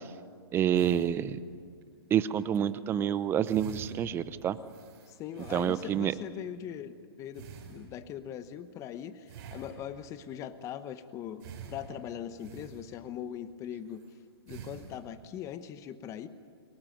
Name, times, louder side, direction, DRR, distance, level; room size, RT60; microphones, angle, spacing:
voice 1, 0.5-1.4 2.1-4.6 5.5-6.1, right 9 dB, 15° right, 15 dB, 0.7 m, -28 dB
sound 1, 0.7-1.8 2.4-2.6 3.1-3.2 3.4-6.2 7.3-8.3 9.3-10.2 11.4-13.3 13.8-14.1 14.5-15.3, right 6 dB, 45° right, 5.5 m, -47 dB
voice 2, 5.1-14.0 14.5-16.3, left 9 dB, 25° left, 12 dB, 1.0 m, -41 dB
24.0 x 19.5 x 9.3 m, 2.1 s
hypercardioid pair, 140°, 13 cm